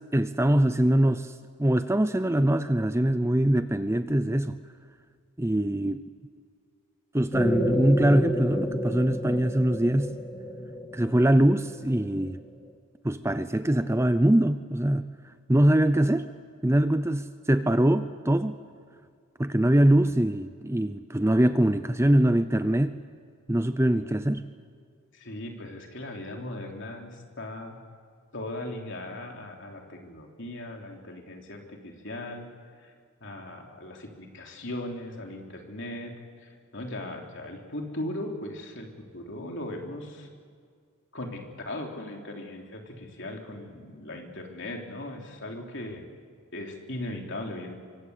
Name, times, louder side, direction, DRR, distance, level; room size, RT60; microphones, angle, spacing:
voice 1, 0.1-1.3 1.6-4.6 5.4-6.0 7.1-10.1 10.9-12.4 13.0-15.1 15.5-16.3 16.6-18.6 19.4-23.0 23.5-24.5, right 1 dB, 10° right, 11 dB, 0.6 m, -23 dB
sound 1, 7.3-12.4, equal, 15° left, 1.9 m, -30 dB
voice 2, 25.1-27.8 28.3-32.5 32.8-32.9 33.2-36.1 36.4-38.9 39.1-40.3 41.1-46.0 46.5-47.8, left 1 dB, 55° left, 1 dB, 3.5 m, -38 dB
24.5 x 24.5 x 8.3 m, 2.1 s
head